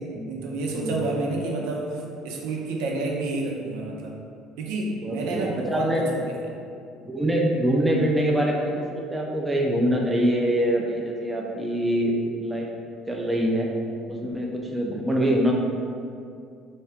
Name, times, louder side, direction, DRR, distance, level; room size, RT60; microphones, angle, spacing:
voice 1, 0.0-4.2 4.6-6.6, right 2 dB, 90° right, -1 dB, 0.6 m, -29 dB
voice 2, 0.7-1.0 5.0-6.0 7.0-12.1 12.4-12.7 13.1-13.7 14.1-15.5, equal, 10° right, -1 dB, 0.4 m, -24 dB
3.4 x 2.7 x 3.4 m, 2.4 s
cardioid pair, 135°, 0 cm